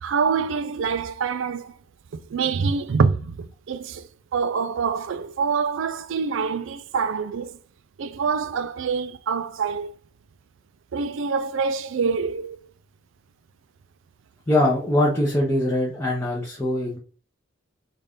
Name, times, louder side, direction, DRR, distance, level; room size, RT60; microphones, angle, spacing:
voice 1, 0.0-1.7 2.1-7.6 8.0-9.9 10.9-12.7, right 5 dB, 70° right, 0.4 m, -26 dB
voice 2, 14.5-17.0, left 1 dB, 10° left, 0.7 m, -22 dB
4.0 x 2.4 x 3.5 m
head